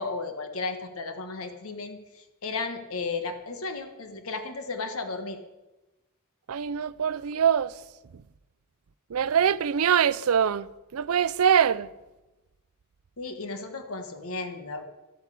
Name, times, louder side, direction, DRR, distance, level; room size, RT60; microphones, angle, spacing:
voice 1, 0.0-5.4 13.2-14.8, left 3 dB, 75° left, 1.4 m, -34 dB
voice 2, 6.5-7.7 9.1-10.7 10.9-11.9, right 8 dB, 80° right, 0.5 m, -23 dB
13.0 x 8.4 x 8.4 m
head